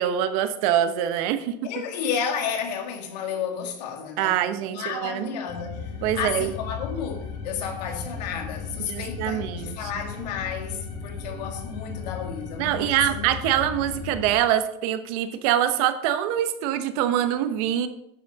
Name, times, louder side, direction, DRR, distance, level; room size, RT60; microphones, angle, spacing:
voice 1, 0.0-1.5 4.2-5.4 6.0-6.5 8.8-9.9 12.6-17.9, right 11 dB, 65° right, 1.0 m, -24 dB
voice 2, 1.6-13.3, left 7 dB, 85° left, 1.9 m, -32 dB
sound 1, 5.5-14.3, left 5 dB, 55° left, 3.7 m, -36 dB
9.8 x 7.0 x 4.1 m
supercardioid pair, 135°, 21 cm